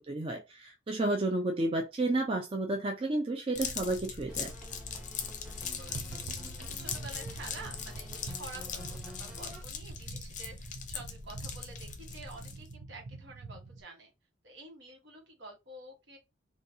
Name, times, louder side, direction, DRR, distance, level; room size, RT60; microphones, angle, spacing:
voice 1, 0.0-4.5, right 2 dB, 30° right, 0.4 m, -31 dB
sound 1, 3.5-12.7, left 6 dB, 40° left, 0.5 m, -40 dB
sound 2, 4.3-9.6, equal, 5° right, 0.8 m, -50 dB
voice 2, 5.2-6.2 6.6-14.1 14.4-16.2, right 2 dB, 70° right, 1.3 m, -49 dB
sound 3, 5.7-13.8, right 3 dB, 90° right, 0.6 m, -46 dB
3.9 x 2.4 x 2.7 m
head